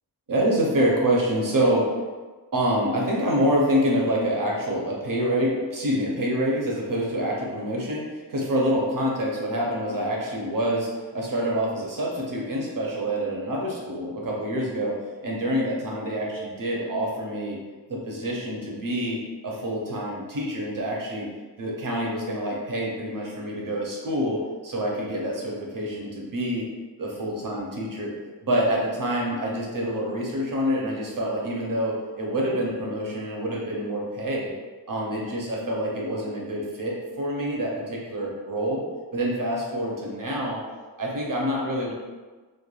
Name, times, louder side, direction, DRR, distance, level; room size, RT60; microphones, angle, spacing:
voice 1, 0.3-1.9 2.5-8.0 8.3-15.0 15.2-17.6 17.9-19.2 19.4-21.3 21.6-26.6 27.0-28.1 28.4-34.5 34.9-38.8 39.1-40.6 41.0-41.9, equal, 50° right, -3 dB, 0.7 m, -26 dB
3.1 x 2.2 x 2.3 m, 1.3 s
wide cardioid pair, 100°, 42 cm